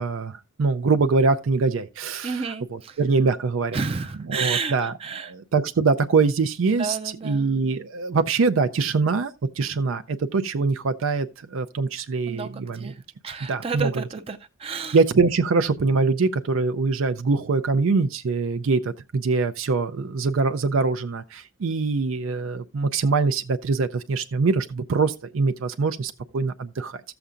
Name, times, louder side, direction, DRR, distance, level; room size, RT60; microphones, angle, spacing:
voice 1, 0.0-3.8 4.3-7.0 7.2-12.9 13.5-13.9 14.9-27.0, right 4 dB, 90° right, 0.5 m, -23 dB
voice 2, 2.2-3.0 3.7-5.3 6.8-7.5 12.3-13.0 13.2-15.0, right 5 dB, 30° right, 0.4 m, -31 dB
14.5 x 6.9 x 2.5 m
head